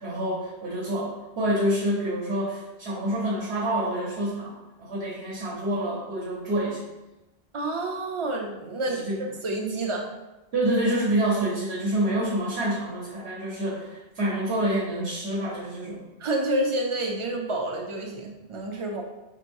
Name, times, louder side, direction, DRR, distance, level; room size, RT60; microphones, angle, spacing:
voice 1, 0.0-6.8 8.9-9.1 10.5-16.0, right 1 dB, 70° right, -6 dB, 1.3 m, -27 dB
voice 2, 7.5-9.1 9.4-10.1 16.2-19.0, right 1 dB, 40° right, 1 dB, 0.5 m, -28 dB
5.3 x 2.9 x 2.6 m, 1.0 s
omnidirectional pair, 1.1 m